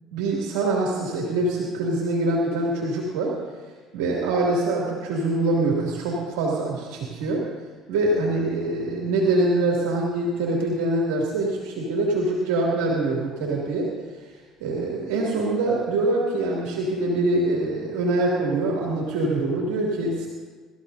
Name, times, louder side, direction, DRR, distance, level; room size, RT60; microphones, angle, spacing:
voice 1, 0.1-3.4 3.9-7.5 7.9-13.9 14.6-20.3, right 2 dB, 85° right, -3 dB, 2.4 m, -24 dB
26.0 x 14.0 x 2.7 m, 1.4 s
supercardioid pair, 95°, 0 cm